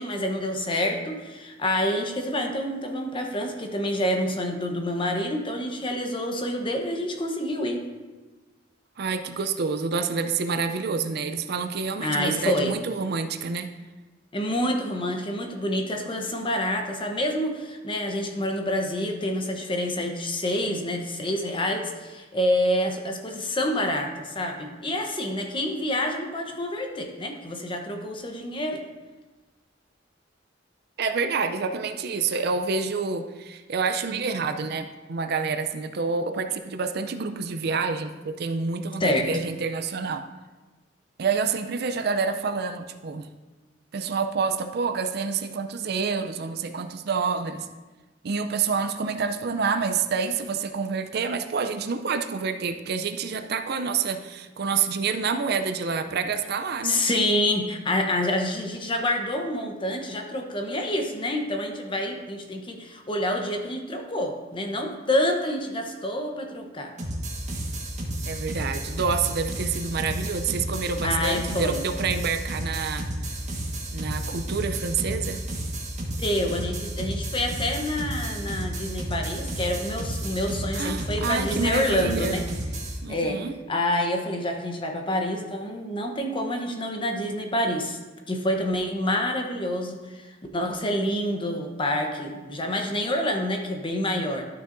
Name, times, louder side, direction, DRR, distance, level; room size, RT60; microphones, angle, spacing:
voice 1, 0.0-7.9 12.0-12.7 14.3-28.8 39.0-39.3 56.8-66.9 71.0-71.8 76.2-82.4 83.1-83.4 83.7-88.0 88.3-94.4, left 1 dB, 25° left, 3 dB, 0.9 m, -27 dB
voice 2, 9.0-13.7 31.0-40.2 41.2-43.3 43.9-47.7 48.2-57.0 68.2-73.1 73.9-75.4 80.7-82.4 83.0-83.5, right 5 dB, 60° right, 8 dB, 0.5 m, -28 dB
sound 1, 67.0-83.0, right 1 dB, 40° right, 1.4 m, -32 dB
12.0 x 6.5 x 2.6 m, 1.2 s
head